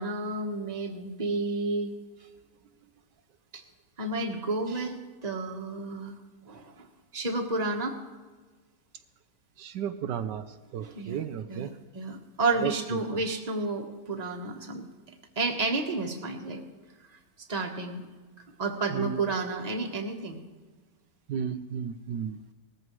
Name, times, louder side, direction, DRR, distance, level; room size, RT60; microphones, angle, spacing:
voice 1, 0.0-1.9 3.5-3.6 4.0-6.1 6.4-6.9 7.1-8.0 10.8-11.2 11.5-14.8 15.3-16.6 17.1-18.1 18.6-20.4, right 3 dB, 25° right, 1 dB, 1.3 m, -31 dB
voice 2, 9.6-11.7 12.6-12.7 18.9-19.2 21.3-22.4, right 8 dB, 80° right, 9 dB, 1.2 m, -33 dB
18.5 x 14.5 x 3.2 m, 1.3 s
omnidirectional pair, 1.9 m